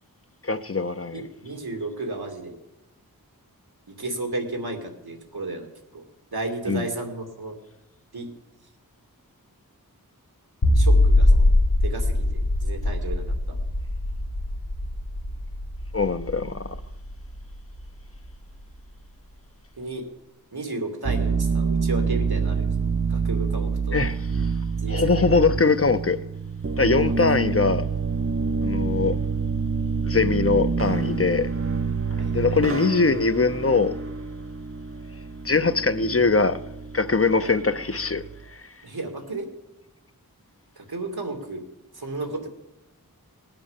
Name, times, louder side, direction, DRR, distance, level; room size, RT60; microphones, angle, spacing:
voice 1, 0.4-1.2 6.7-6.9 15.9-16.7 23.9-24.3 24.9-26.2 26.8-27.9 28.6-29.2 30.0-31.5 32.3-33.9 35.4-36.6 36.9-38.2, left 4 dB, 40° left, 0.8 m, -22 dB
voice 2, 1.1-2.6 3.9-6.0 6.3-7.6 8.1-8.3 10.7-11.5 11.8-13.6 19.8-20.1 20.5-24.0 24.8-25.6 27.0-27.4 32.2-32.6 37.4-37.5 38.8-39.5 40.8-41.6 41.9-42.5, right 2 dB, 90° right, 2.6 m, -33 dB
sound 1, 10.6-17.8, left 1 dB, 75° left, 1.4 m, -22 dB
sound 2, 21.0-38.4, right 5 dB, 40° right, 0.8 m, -27 dB
18.5 x 8.9 x 7.3 m
wide cardioid pair, 50°, 36 cm